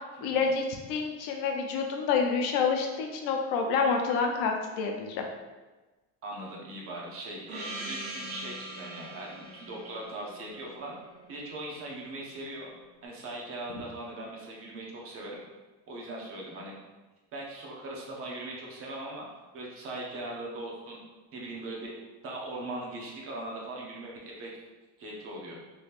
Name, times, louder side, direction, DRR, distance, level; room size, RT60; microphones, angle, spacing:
voice 1, 0.2-5.2, left 5 dB, 85° left, 2 dB, 0.6 m, -28 dB
voice 2, 6.2-11.0 11.3-12.7 13.0-15.4 15.9-16.8 17.3-19.3 19.5-21.0 21.3-21.9 22.2-24.5 25.0-25.6, right 1 dB, 35° right, -2 dB, 0.6 m, -40 dB
Gong, 7.5-11.8, right 1 dB, 65° right, 1.3 m, -42 dB
3.2 x 3.0 x 2.4 m, 1.2 s
cardioid pair, 160°, 41 cm